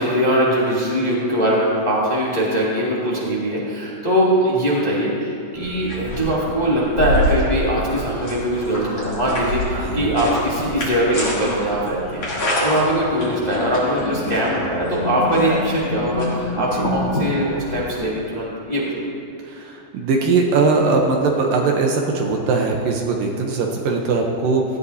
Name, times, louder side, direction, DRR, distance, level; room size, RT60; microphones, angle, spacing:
voice 1, 0.0-19.0, equal, 15° left, -7 dB, 1.7 m, -21 dB
sound 1, 5.5-18.0, left 1 dB, 40° left, 3.7 m, -26 dB
voice 2, 9.7-10.2 16.6-16.9 19.5-24.6, right 4 dB, 70° right, 1 dB, 2.4 m, -20 dB
17.5 x 14.0 x 2.8 m, 2.6 s
omnidirectional pair, 4.4 m